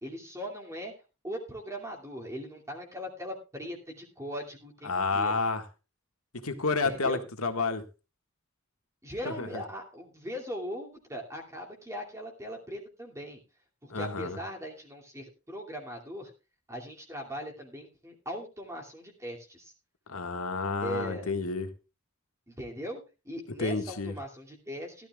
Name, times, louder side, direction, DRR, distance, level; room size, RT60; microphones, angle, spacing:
voice 1, 0.0-0.9 1.2-5.3 6.8-7.2 9.0-13.4 13.8-16.3 16.7-19.7 20.8-21.4 22.5-25.1, equal, 15° right, 0 dB, 2.6 m, -40 dB
voice 2, 4.8-5.7 6.4-7.8 9.3-9.6 13.9-14.4 20.1-21.7 23.6-24.1, left 3 dB, 80° left, 7 dB, 1.8 m, -30 dB
16.5 x 12.5 x 2.4 m, 0.30 s
head